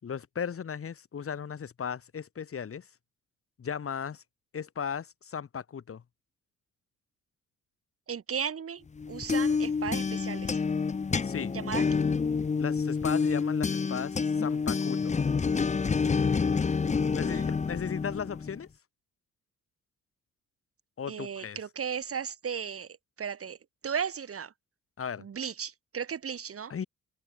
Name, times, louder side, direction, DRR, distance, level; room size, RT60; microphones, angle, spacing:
voice 1, 0.0-2.9 3.6-4.2 4.5-6.0 11.2-11.5 12.6-15.2 17.1-18.7 21.0-21.6 25.0-25.3 26.7-26.9, left 7 dB, 45° left, 5.6 m, -36 dB
voice 2, 8.1-10.6 11.5-11.8 17.3-17.4 21.1-22.9 23.2-23.6 23.8-24.5 25.2-26.7, right 7 dB, 50° right, 5.2 m, -35 dB
sound 1, 9.0-18.6, left 5 dB, 25° left, 0.8 m, -28 dB
cardioid pair, 90°, 30 cm